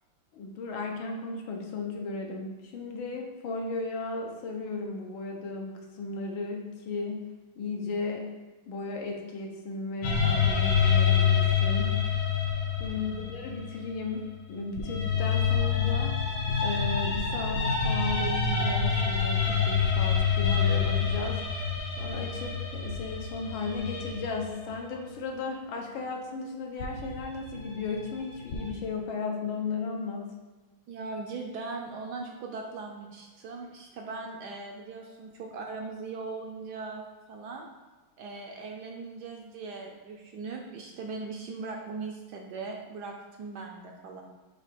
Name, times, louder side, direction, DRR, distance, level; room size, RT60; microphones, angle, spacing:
voice 1, 0.3-7.2 7.6-8.3 8.7-11.9 12.8-16.1 16.6-21.4 22.0-30.3, left 3 dB, 80° left, 1 dB, 1.6 m, -35 dB
sound 1, 10.0-14.2 14.8-24.8 26.8-28.7, left 6 dB, 65° left, 1.4 m, -27 dB
voice 2, 12.9-13.3 30.9-37.0 37.3-37.7 38.2-44.2, right 4 dB, 70° right, 1 dB, 1.1 m, -39 dB
6.6 x 2.8 x 5.1 m, 1.2 s
omnidirectional pair, 2.2 m